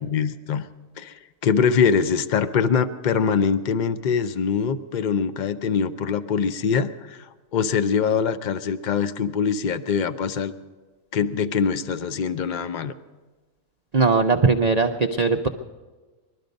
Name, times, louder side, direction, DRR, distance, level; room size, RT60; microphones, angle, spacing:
voice 1, 0.0-0.7 1.0-10.5 11.1-12.9, left 6 dB, 80° left, 11 dB, 0.4 m, -23 dB
voice 2, 13.9-15.5, right 4 dB, 90° right, 4 dB, 0.3 m, -19 dB
20.5 x 12.5 x 5.2 m, 1.3 s
omnidirectional pair, 1.6 m